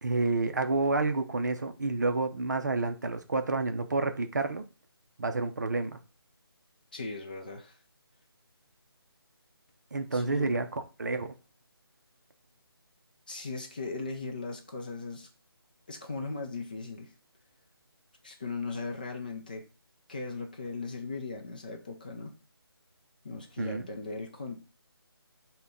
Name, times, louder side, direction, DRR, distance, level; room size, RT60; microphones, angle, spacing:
voice 1, 0.0-4.6 5.2-6.0 9.9-11.3 23.6-23.9, right 3 dB, 45° right, 8 dB, 0.5 m, -29 dB
voice 2, 6.9-7.8 10.1-10.5 13.3-15.3 15.9-17.1 18.2-19.6 20.1-22.3 23.2-24.6, left 3 dB, 20° left, 3 dB, 0.4 m, -38 dB
5.4 x 2.2 x 3.8 m, 0.33 s
figure-of-eight pair, 155°, 13 cm